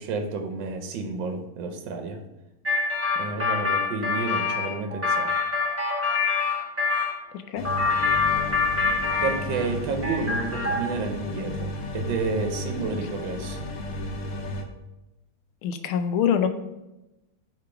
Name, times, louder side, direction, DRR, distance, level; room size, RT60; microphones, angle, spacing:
voice 1, 0.0-2.2 3.1-5.3 9.2-13.6, right 4 dB, 70° right, 5 dB, 1.3 m, -30 dB
sound 1, 2.6-7.1 7.6-9.7 10.0-11.0, left 4 dB, 10° right, 1.1 m, -25 dB
sound 2, 7.6-14.6, left 1 dB, 60° left, 0.8 m, -34 dB
voice 2, 15.6-16.5, left 8 dB, 85° left, 8 dB, 1.5 m, -24 dB
5.0 x 3.7 x 5.7 m, 0.96 s
omnidirectional pair, 2.3 m